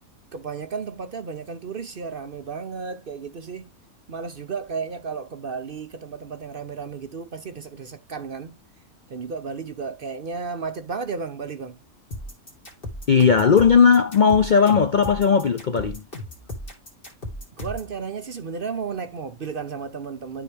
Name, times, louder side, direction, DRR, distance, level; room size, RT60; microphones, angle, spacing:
voice 1, 0.3-3.7 4.1-8.6 9.1-11.8 17.6-20.4, right 5 dB, 50° right, 0.7 m, -33 dB
sound 1, 12.1-17.9, left 1 dB, 40° left, 2.7 m, -35 dB
voice 2, 13.1-16.0, left 6 dB, 55° left, 0.5 m, -17 dB
12.0 x 4.1 x 3.4 m
omnidirectional pair, 1.5 m